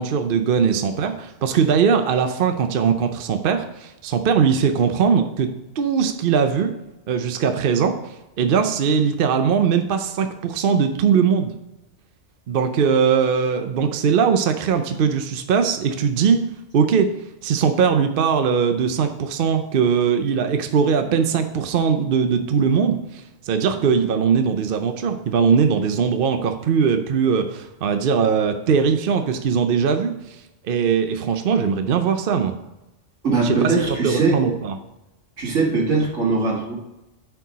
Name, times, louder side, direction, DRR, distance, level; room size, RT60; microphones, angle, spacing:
voice 1, 0.0-5.5 5.8-6.7 7.1-11.5 12.5-17.1 17.4-30.4 30.6-32.5 33.4-34.8, right 6 dB, 55° right, 7 dB, 0.7 m, -20 dB
voice 2, 33.2-34.4 35.4-36.7, right 3 dB, 75° right, -1 dB, 2.1 m, -20 dB
9.9 x 4.6 x 4.1 m, 0.96 s
omnidirectional pair, 1.3 m